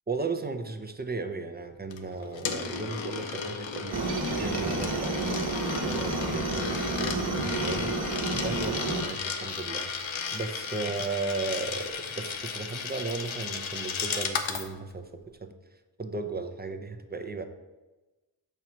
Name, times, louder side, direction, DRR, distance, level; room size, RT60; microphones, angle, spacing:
voice 1, 0.1-5.4 5.8-9.9 10.3-15.5 16.0-17.5, right 3 dB, 20° right, 7 dB, 0.5 m, -35 dB
Coin (dropping), 1.9-14.7, left 6 dB, 80° left, 0.9 m, -34 dB
Aircraft, 3.9-9.0, right 2 dB, 55° right, 1.1 m, -30 dB
6.8 x 4.5 x 6.0 m, 1.1 s
wide cardioid pair, 145°, 46 cm